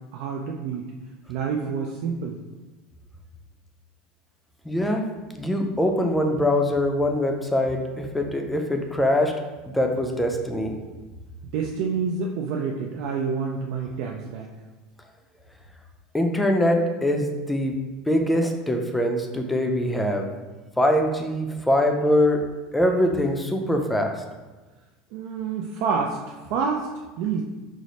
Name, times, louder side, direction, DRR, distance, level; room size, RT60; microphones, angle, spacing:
voice 1, 0.1-0.9 1.3-2.4 11.4-14.5 25.1-26.9 27.2-27.4, right 5 dB, 65° right, 1 dB, 0.3 m, -28 dB
voice 2, 4.7-5.0 5.3-9.4 9.7-10.8 16.1-17.8 18.1-20.3 20.8-24.1, left 1 dB, 5° left, 3 dB, 0.4 m, -23 dB
4.8 x 2.0 x 4.0 m, 1.2 s
supercardioid pair, 130°, 0 cm